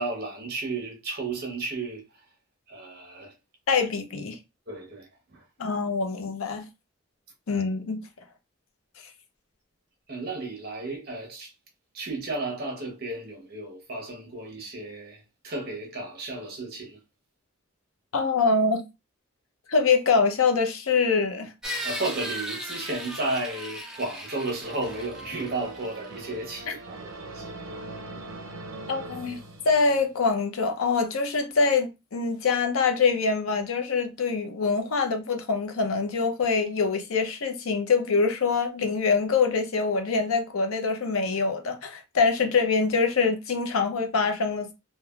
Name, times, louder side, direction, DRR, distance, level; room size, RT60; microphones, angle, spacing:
voice 1, 0.0-2.0 2.7-3.3 4.7-5.4 10.1-11.5 11.9-17.0 21.8-27.6, right 2 dB, 45° right, 0.8 m, -33 dB
voice 2, 3.7-4.4 5.6-6.7 7.5-8.0 18.1-18.8 19.7-21.5 26.7-26.8 28.9-29.4 29.7-44.7, left 4 dB, 85° left, 0.6 m, -24 dB
sound 1, 21.6-26.3, equal, 5° right, 0.3 m, -37 dB
sound 2, 24.6-30.3, right 2 dB, 75° right, 0.5 m, -41 dB
3.2 x 2.1 x 2.2 m
head